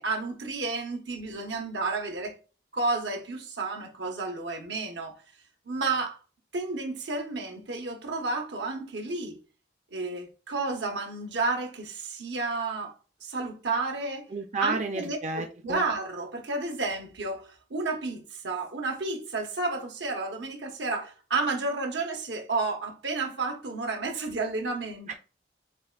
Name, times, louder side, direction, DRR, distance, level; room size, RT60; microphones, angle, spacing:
voice 1, 0.0-2.4 2.7-5.2 5.7-6.2 6.5-9.4 9.9-12.9 13.2-14.3 14.6-15.2 15.6-25.1, right 3 dB, 80° right, 1.1 m, -31 dB
voice 2, 14.3-15.8 25.1-25.2, right 3 dB, 40° right, 0.4 m, -31 dB
7.3 x 2.5 x 2.3 m
head